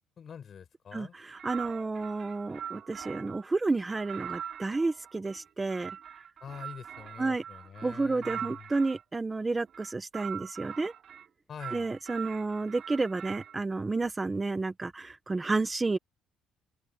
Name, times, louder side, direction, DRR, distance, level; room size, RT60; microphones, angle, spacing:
voice 1, 0.2-1.1 6.4-8.7 11.5-11.9, left 7 dB, 35° left, 7.6 m, -45 dB
voice 2, 0.9-5.9 7.2-7.4 7.8-10.9 11.7-16.0, right 3 dB, 15° right, 1.4 m, -31 dB
sound 1, 1.3-3.4 3.9-9.0 9.7-11.3 11.6-13.6, right 8 dB, 45° right, 4.0 m, -42 dB
cardioid pair, 160°, 0 cm